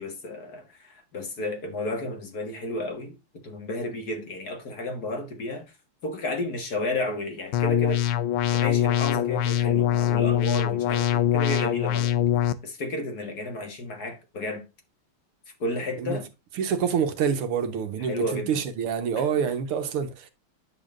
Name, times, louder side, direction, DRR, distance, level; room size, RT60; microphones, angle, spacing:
voice 1, 0.0-3.2 3.4-5.7 6.0-8.1 8.5-12.1 12.6-14.6 15.6-16.3 18.0-18.6, left 1 dB, 45° left, 2.0 m, -32 dB
sound 1, 7.5-12.5, left 10 dB, 75° left, 1.4 m, -23 dB
voice 2, 16.6-20.3, right 7 dB, 80° right, 2.0 m, -27 dB
9.4 x 7.0 x 2.5 m
omnidirectional pair, 2.4 m